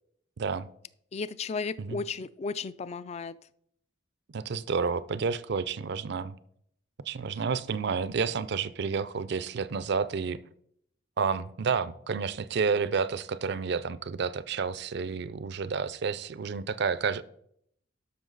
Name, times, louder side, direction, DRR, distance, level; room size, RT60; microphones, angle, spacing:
voice 1, 0.4-0.7 1.8-2.0 4.3-6.4 7.1-10.4 11.2-17.2, right 5 dB, 60° right, 0.5 m, -30 dB
voice 2, 1.1-3.4, left 4 dB, 35° left, 0.3 m, -34 dB
12.5 x 5.8 x 3.9 m
head